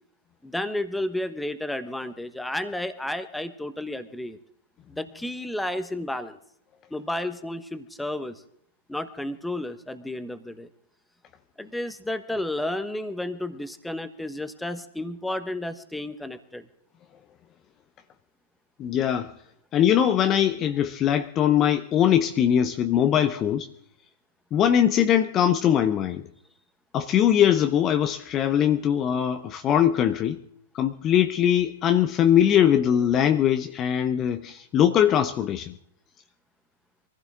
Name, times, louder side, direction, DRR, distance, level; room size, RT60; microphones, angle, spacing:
voice 1, 0.4-4.4 4.9-6.4 6.9-8.4 8.9-10.7 11.6-16.7, left 1 dB, 5° left, 1.3 m, -32 dB
voice 2, 18.8-19.3 19.7-23.7 24.5-26.2 26.9-30.4 30.7-35.7, left 10 dB, 30° left, 0.8 m, -21 dB
23.5 x 15.0 x 3.7 m
figure-of-eight pair, 110°, 0 cm